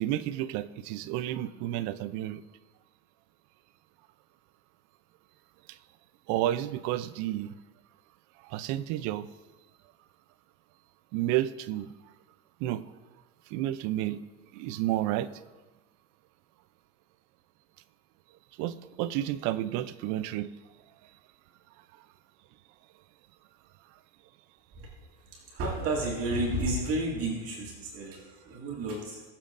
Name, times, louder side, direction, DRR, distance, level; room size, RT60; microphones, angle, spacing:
voice 1, 0.0-2.4 5.7-5.8 6.3-7.5 8.4-9.3 11.1-11.9 12.6-12.8 13.5-14.2 14.5-15.3 18.6-20.5, right 13 dB, 60° right, 14 dB, 0.6 m, -31 dB
voice 2, 25.3-29.2, right 1 dB, 45° right, -3 dB, 2.1 m, -32 dB
20.0 x 7.4 x 2.6 m, 1.2 s
supercardioid pair, 140°, 34 cm